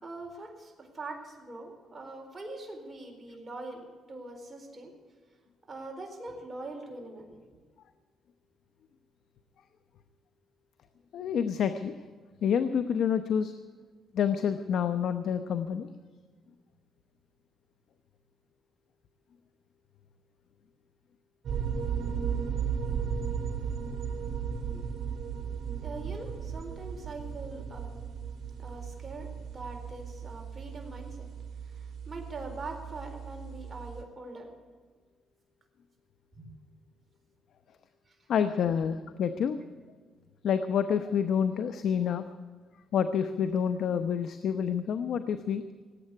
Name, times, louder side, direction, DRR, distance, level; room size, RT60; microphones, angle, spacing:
voice 1, 0.0-4.9 5.7-7.4 24.7-24.8 25.8-27.9 28.6-29.3 29.5-31.2 31.7-34.5 36.4-36.5 38.1-38.2, right 2 dB, 25° right, 2 dB, 4.3 m, -43 dB
voice 2, 11.1-11.9 12.4-13.5 14.1-15.9 38.3-39.6 40.4-42.2 42.9-45.6, left 7 dB, 70° left, 10 dB, 0.8 m, -28 dB
sound 1, 21.4-34.0, right 7 dB, 55° right, 2.9 m, -36 dB
18.5 x 8.7 x 8.3 m, 1.5 s
cardioid pair, 90°, 0 cm